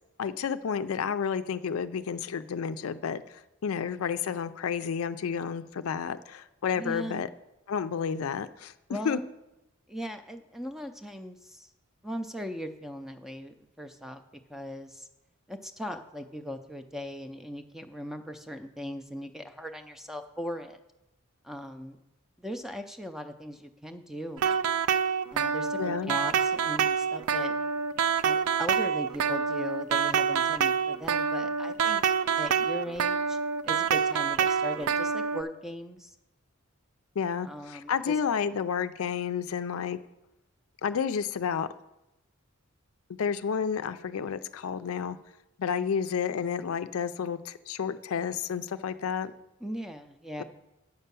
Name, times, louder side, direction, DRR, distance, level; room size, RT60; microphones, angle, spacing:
voice 1, 0.2-7.3 7.7-9.2 25.8-26.1 37.2-40.0 40.8-41.7 43.1-45.2 45.6-49.3 50.4-50.5, left 7 dB, 75° left, 12 dB, 0.4 m, -31 dB
voice 2, 6.7-7.2 8.9-9.3 9.9-11.7 12.0-14.2 14.5-15.1 15.5-20.8 21.4-22.0 22.4-24.6 25.3-27.6 28.2-32.0 32.4-33.4 33.7-36.1 37.4-38.2 49.6-50.4, equal, ahead, 7 dB, 0.5 m, -39 dB
sound 1, 24.4-35.4, right 6 dB, 85° right, 0.4 m, -27 dB
8.1 x 5.6 x 6.8 m, 0.95 s
head